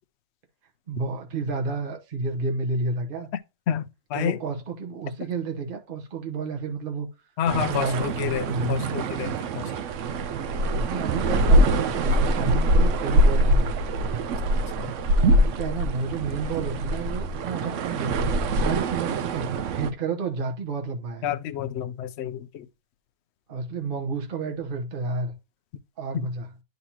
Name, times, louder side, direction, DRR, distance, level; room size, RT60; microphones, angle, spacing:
voice 1, 0.9-3.3 4.1-7.1 7.5-9.0 10.8-13.9 15.3-21.3 23.5-25.3 26.0-26.5, right 4 dB, 40° right, 1.2 m, -31 dB
voice 2, 3.7-4.4 7.4-9.9 14.8-14.9 21.2-22.7 26.1-26.3, left 9 dB, 60° left, 0.7 m, -29 dB
sound 1, 7.5-19.9, right 1 dB, 65° right, 0.9 m, -23 dB
11.0 x 4.0 x 2.9 m
omnidirectional pair, 1.6 m